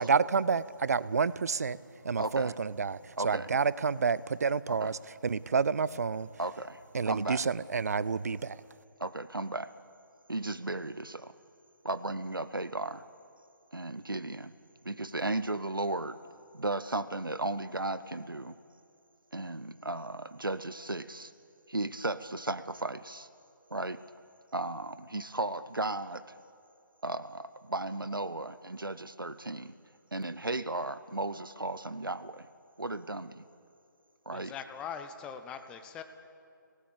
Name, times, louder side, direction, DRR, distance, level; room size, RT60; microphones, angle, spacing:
voice 1, 0.0-1.8 2.0-6.3 6.9-8.6, right 5 dB, 50° right, 19 dB, 0.5 m, -29 dB
voice 2, 2.2-2.5 3.2-3.5 4.7-4.9 6.4-6.8 7.0-7.4 9.0-9.7 10.3-11.3 11.8-13.0 13.7-14.5 14.8-16.2 16.5-18.6 19.3-21.3 21.7-23.3 23.7-24.0 24.5-26.2 27.0-29.7 30.1-32.5 32.8-33.4 34.3-34.5, right 2 dB, 80° right, 14 dB, 0.8 m, -35 dB
voice 3, 34.3-36.0, left 7 dB, 10° left, 8 dB, 0.7 m, -41 dB
25.0 x 18.0 x 8.5 m, 2.5 s
figure-of-eight pair, 150°, 11 cm